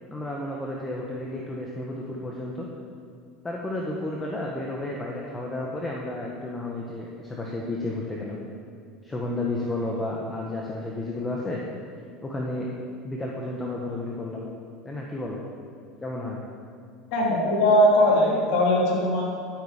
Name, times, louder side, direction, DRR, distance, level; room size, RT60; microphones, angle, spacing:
voice 1, 0.1-2.7 3.4-8.4 9.0-11.6 12.2-12.7 13.0-14.5 14.8-15.4 16.0-16.4, left 2 dB, 20° left, -2 dB, 1.5 m, -32 dB
voice 2, 17.1-19.2, left 1 dB, 65° left, -4 dB, 3.1 m, -20 dB
12.0 x 8.5 x 5.1 m, 2.2 s
supercardioid pair, 100°, 0 cm